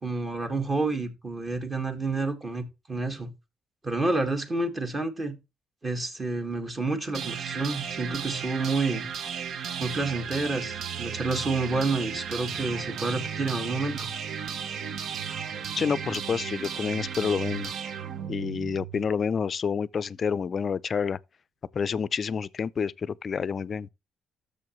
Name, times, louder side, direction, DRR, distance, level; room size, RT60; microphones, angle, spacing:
voice 1, 0.0-3.3 3.8-5.4 5.8-9.1 9.8-14.1, right 3 dB, 30° right, 1.7 m, -29 dB
sound 1, 7.1-19.1, right 7 dB, 70° right, 0.7 m, -34 dB
voice 2, 15.8-17.7 18.3-21.2 21.7-23.9, left 6 dB, 45° left, 0.4 m, -28 dB
12.5 x 6.8 x 3.1 m
cardioid pair, 90°, 0 cm